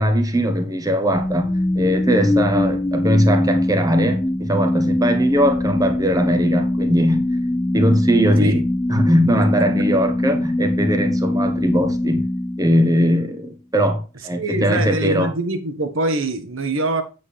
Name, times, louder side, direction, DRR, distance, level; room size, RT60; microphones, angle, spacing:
voice 1, 0.0-1.5 1.7-7.3 7.7-8.6 8.9-12.2 12.6-15.3, equal, 20° right, 1.2 m, -19 dB
sound 1, 1.1-13.3, left 1 dB, 15° left, 0.3 m, -22 dB
voice 2, 9.4-9.8 14.3-17.0, right 2 dB, 85° right, 1.5 m, -24 dB
8.3 x 7.6 x 3.4 m
head